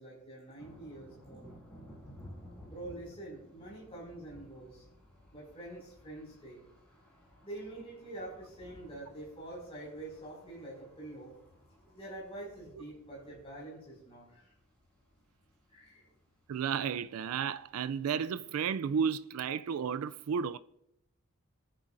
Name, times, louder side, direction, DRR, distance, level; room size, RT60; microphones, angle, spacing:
voice 1, 0.0-1.5 2.6-4.8 5.3-6.6 7.4-11.3 11.8-14.5 15.7-16.1, right 1 dB, 25° left, 5.5 m, -46 dB
sound 1, 0.6-19.2, equal, 5° left, 5.4 m, -57 dB
voice 2, 16.5-20.6, right 7 dB, 90° right, 0.4 m, -33 dB
26.0 x 11.0 x 2.6 m
head